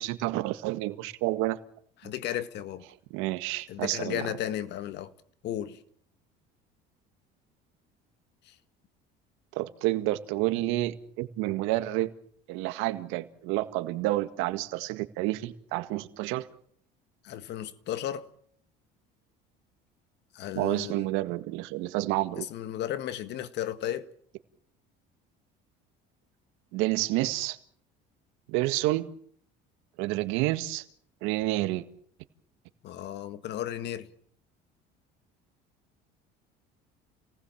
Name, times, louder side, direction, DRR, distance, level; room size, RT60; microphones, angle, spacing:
voice 1, 0.0-1.6 3.1-4.2 9.6-12.1 12.5-16.5 20.6-22.5 26.7-27.6 28.5-29.1 30.0-30.8 31.2-31.8, right 17 dB, 80° right, 1.9 m, -29 dB
voice 2, 2.0-2.8 3.7-5.1 5.4-5.8 8.5-8.6 17.2-18.3 20.3-21.1 22.4-24.1 32.8-34.1, left 11 dB, 60° left, 1.8 m, -34 dB
28.5 x 19.0 x 7.3 m
cardioid pair, 120°, 20 cm